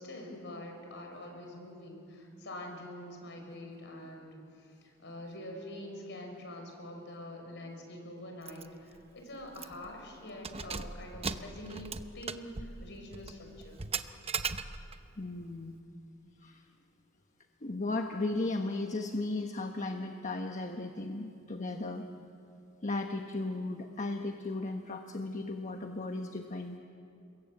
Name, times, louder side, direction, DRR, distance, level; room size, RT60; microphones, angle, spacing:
voice 1, 0.0-4.7 5.0-13.8, left 1 dB, 60° left, 3 dB, 6.1 m, -45 dB
Keys jangling, 8.5-8.7 9.0-9.1 9.5-9.9 10.3-15.1, right 5 dB, 30° right, 0.9 m, -39 dB
voice 2, 15.2-15.8 16.4-16.6 17.6-22.1 22.8-26.8, left 2 dB, 40° left, 4 dB, 1.2 m, -35 dB
30.0 x 22.0 x 8.9 m, 2.6 s
head